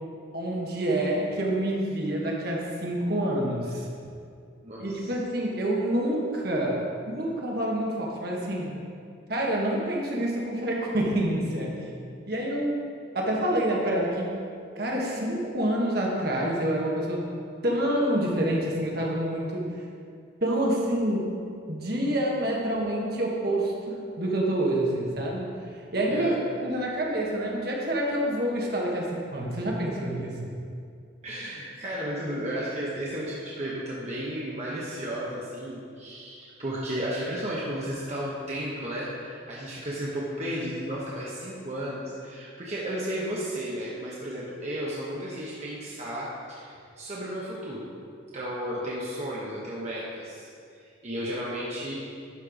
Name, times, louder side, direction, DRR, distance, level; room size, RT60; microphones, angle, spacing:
voice 1, 0.3-3.9 4.8-6.8 7.1-8.8 9.3-11.8 12.3-12.8 13.1-14.3 14.8-17.2 17.6-19.7 20.4-21.3 21.7-25.5 25.8-26.3 26.6-30.5, right 1 dB, 50° right, -2 dB, 1.4 m, -27 dB
voice 2, 4.6-5.1 26.1-26.4 31.2-47.9 48.3-52.0, equal, 35° right, -6 dB, 1.0 m, -33 dB
11.5 x 4.5 x 5.0 m, 2.4 s
head